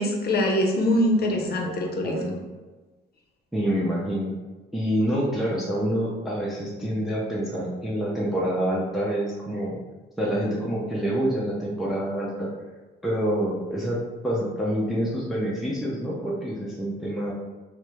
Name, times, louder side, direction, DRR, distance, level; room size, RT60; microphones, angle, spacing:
voice 1, 0.0-2.4, left 1 dB, 55° left, 2 dB, 0.6 m, -23 dB
voice 2, 1.3-2.4 3.5-4.3 4.7-9.7 10.2-12.5 13.0-17.3, equal, ahead, -5 dB, 0.5 m, -27 dB
3.3 x 2.0 x 2.9 m, 1.3 s
cardioid pair, 90°, 20 cm